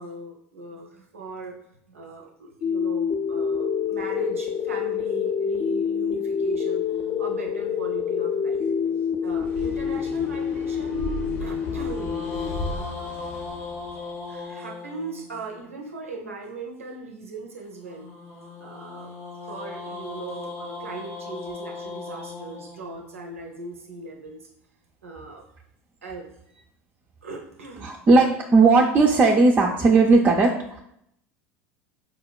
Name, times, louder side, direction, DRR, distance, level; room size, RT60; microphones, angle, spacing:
voice 1, 0.0-1.6 1.9-8.7 9.2-12.1 12.7-13.1 14.3-18.1 18.6-19.1 19.4-24.5 25.0-25.4 26.0-26.4 27.2-27.9, right 3 dB, 90° right, 1 dB, 0.5 m, -39 dB
sound 1, 2.6-12.6, left 7 dB, 40° left, 0.4 m, -27 dB
sound 2, 6.9-9.3 11.5-15.7 17.8-24.0, left 3 dB, 90° left, 1.0 m, -39 dB
sound 3, 9.3-14.2, left 2 dB, 70° left, 0.7 m, -36 dB
voice 2, 27.8-30.8, right 3 dB, 30° right, -1 dB, 0.3 m, -17 dB
4.3 x 2.1 x 2.2 m, 0.74 s
hypercardioid pair, 85°, 7 cm